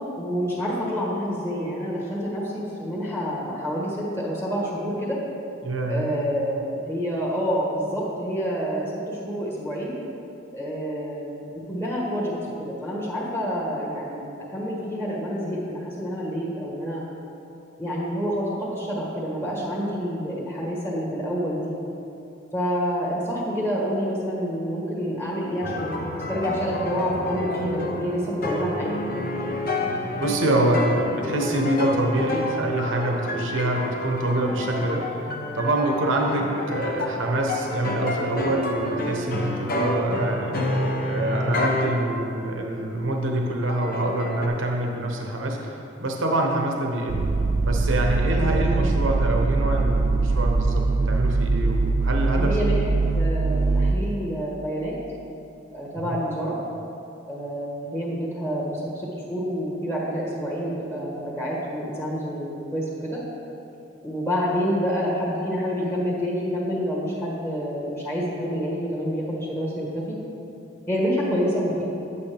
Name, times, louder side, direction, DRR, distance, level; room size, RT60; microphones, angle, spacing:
voice 1, 0.2-5.2 5.9-9.9 10.5-12.3 12.6-17.0 17.8-21.7 22.5-29.0 52.3-52.8 53.1-54.9 55.7-56.5 57.3-63.2 64.0-70.2 70.9-71.8, equal, 10° left, -5 dB, 1.3 m, -28 dB
voice 2, 5.6-6.2 30.2-35.1 35.5-47.3 47.6-52.6 55.9-56.2, right 1 dB, 75° right, 1 dB, 0.9 m, -26 dB
sound 1, 25.6-42.1 42.8-42.9 43.7-44.5, left 1 dB, 45° left, 0.8 m, -29 dB
sound 2, 47.1-53.9, right 3 dB, 40° right, 0.3 m, -22 dB
9.3 x 8.3 x 3.4 m, 2.8 s
head